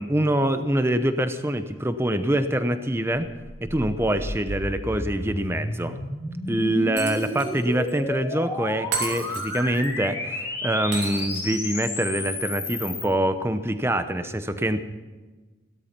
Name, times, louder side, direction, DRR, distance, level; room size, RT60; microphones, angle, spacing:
voice 1, 0.0-3.3 3.6-6.0 6.5-14.8, right 1 dB, 15° right, 10 dB, 0.8 m, -25 dB
sound 1, 3.1-13.1, left 2 dB, 15° left, 2.0 m, -32 dB
Shatter, 7.0-7.6 7.9-8.0 8.9-9.9 10.9-11.9, right 5 dB, 75° right, 3.1 m, -33 dB
16.5 x 13.0 x 5.9 m, 1.3 s
head